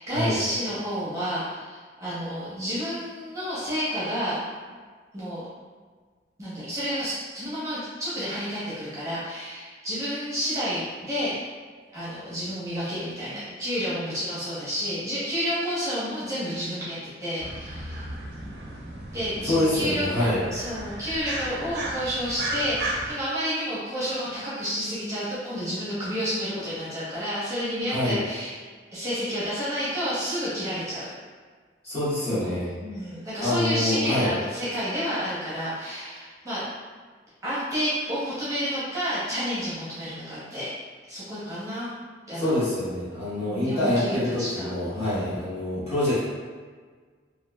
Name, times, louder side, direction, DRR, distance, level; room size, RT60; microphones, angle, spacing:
voice 1, 0.0-4.4 5.1-5.4 6.4-11.3 11.9-18.1 19.1-28.6 28.9-31.1 32.3-32.5 32.8-36.6 37.4-40.7 41.1-41.9 42.3-42.6 43.3-45.3, equal, 15° right, -11 dB, 0.7 m, -30 dB
sound 1, 17.4-23.1, right 1 dB, 60° right, 0.5 m, -35 dB
voice 2, 19.4-20.4 27.9-28.2 31.8-32.7 33.4-34.3 42.3-46.3, left 1 dB, 35° left, -12 dB, 1.2 m, -26 dB
2.9 x 2.5 x 2.2 m, 1.5 s
head